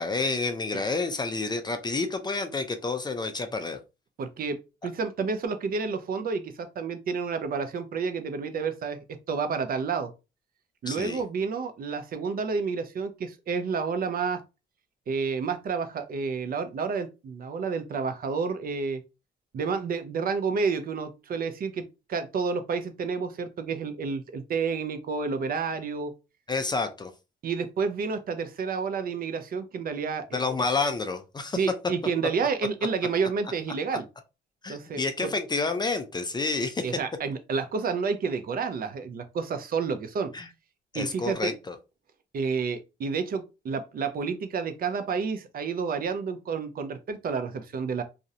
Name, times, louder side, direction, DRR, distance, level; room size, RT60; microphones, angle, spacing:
voice 1, 0.0-3.8 10.9-11.2 26.5-27.1 30.3-31.6 34.6-36.9 40.3-40.5 40.9-41.7, left 3 dB, 20° left, 0.3 m, -29 dB
voice 2, 4.2-4.6 4.8-10.1 10.8-14.4 15.1-19.0 19.5-26.1 27.4-30.3 31.6-34.1 34.7-35.3 36.8-40.3 40.9-41.5 42.3-48.0, right 5 dB, 45° right, 0.5 m, -30 dB
2.4 x 2.0 x 2.7 m
cardioid pair, 90°, 20 cm